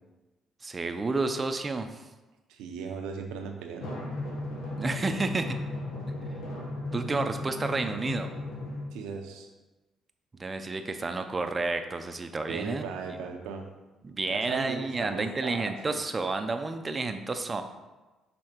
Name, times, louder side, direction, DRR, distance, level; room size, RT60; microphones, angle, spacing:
voice 1, 0.6-1.9 4.7-5.6 6.9-8.3 10.4-12.8 13.1-13.2 14.0-17.6, right 3 dB, 30° right, 7 dB, 0.6 m, -30 dB
voice 2, 2.5-4.0 8.9-9.5 12.5-13.6 14.3-15.6 15.9-16.0, right 5 dB, 90° right, 3 dB, 0.8 m, -37 dB
Drum, 3.8-8.8, left 2 dB, 80° left, 1.3 m, -36 dB
6.5 x 3.4 x 4.5 m, 1.1 s
cardioid pair, 80°, 0 cm